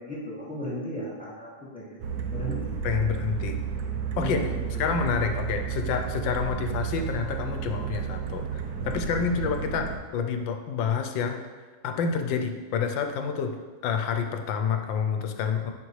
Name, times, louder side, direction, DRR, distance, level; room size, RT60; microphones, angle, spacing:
voice 1, 0.0-1.8 2.3-2.7 4.1-4.4 4.7-4.8, left 1 dB, 5° left, -8 dB, 2.1 m, -35 dB
sound 1, 2.0-10.0, right 7 dB, 65° right, 1.1 m, -32 dB
voice 2, 2.8-3.6 4.2-4.4 4.8-11.4 11.8-13.6 13.8-15.7, left 6 dB, 85° left, 6 dB, 1.4 m, -28 dB
10.0 x 5.2 x 3.2 m, 1.4 s
omnidirectional pair, 2.0 m